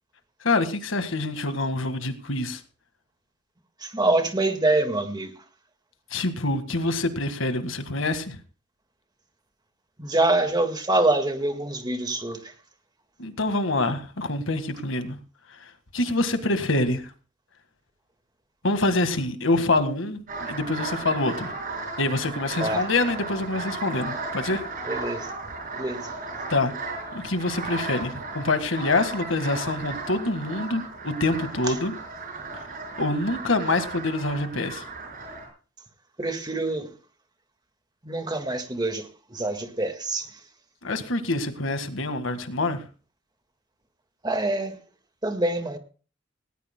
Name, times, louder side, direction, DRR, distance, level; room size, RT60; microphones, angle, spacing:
voice 1, 0.4-2.6 6.1-8.4 13.2-15.2 15.5-17.1 18.6-21.5 22.0-24.6 26.5-26.7 27.1-31.9 32.5-32.7 33.0-34.9 40.8-42.9, left 2 dB, 90° left, 1.7 m, -26 dB
voice 2, 3.8-5.3 10.0-12.5 22.6-22.8 24.9-25.3 25.7-26.1 31.6-31.7 36.2-36.9 38.0-40.4 44.2-44.8 45.2-45.8, right 2 dB, 20° right, 1.7 m, -25 dB
sound 1, 20.3-35.5, right 3 dB, 45° right, 6.9 m, -35 dB
18.5 x 18.0 x 2.2 m
head